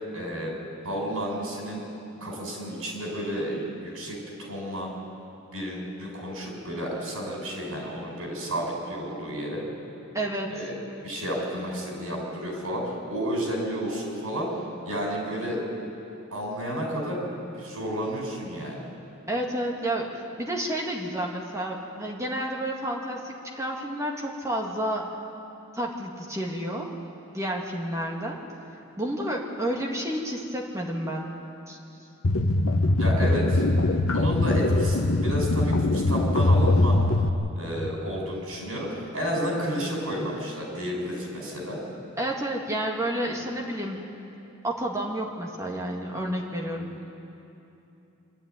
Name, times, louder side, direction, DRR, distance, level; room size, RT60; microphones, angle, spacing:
voice 1, 0.1-0.5 0.8-1.8 2.2-4.9 5.5-9.6 10.5-10.7 11.0-14.5 14.8-15.6 16.3-18.8 33.0-33.6 34.1-37.0 37.5-41.8, equal, 85° right, -1 dB, 6.4 m, -31 dB
voice 2, 10.1-10.6 19.3-25.1 25.7-26.9 27.3-28.4 29.0-31.3 31.7-31.8 42.2-44.1 44.6-47.0, right 1 dB, 15° right, -1 dB, 1.9 m, -30 dB
sound 1, 32.2-37.3, left 2 dB, 75° left, 0.9 m, -22 dB
25.0 x 12.5 x 9.6 m, 2.9 s
head